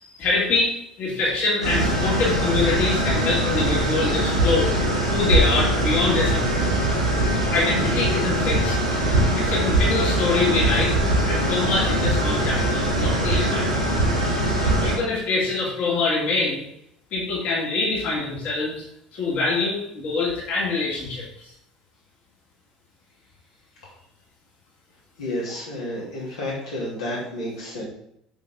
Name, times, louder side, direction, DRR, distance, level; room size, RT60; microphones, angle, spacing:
voice 1, 0.0-4.7 5.1-6.7 7.5-8.7 9.4-10.9 11.3-13.9 14.8-16.6 17.1-18.8 19.1-21.5, left 3 dB, 50° left, -4 dB, 2.4 m, -25 dB
sound 1, 1.6-14.9, right 1 dB, 90° right, 2.5 m, -22 dB
voice 2, 25.2-27.8, left 1 dB, 70° left, -5 dB, 2.9 m, -30 dB
7.2 x 6.0 x 3.7 m, 0.73 s
figure-of-eight pair, 65°, 3 cm